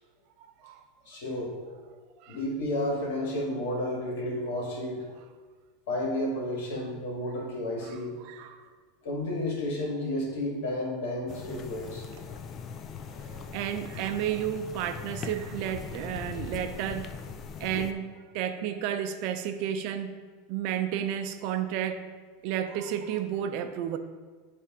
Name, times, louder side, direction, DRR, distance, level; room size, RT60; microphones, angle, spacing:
voice 1, 1.1-1.6 2.3-5.1 5.9-8.2 9.0-12.0, left 1 dB, 75° left, -2 dB, 2.1 m, -31 dB
voice 2, 8.3-8.6 12.3-12.4 13.2-17.2 17.6-20.2 20.5-22.1 22.4-24.0, right 10 dB, 50° right, 8 dB, 0.5 m, -32 dB
sound 1, 11.3-17.9, left 6 dB, 25° left, 0.3 m, -40 dB
10.0 x 3.4 x 3.9 m, 1.4 s
supercardioid pair, 155°, 0 cm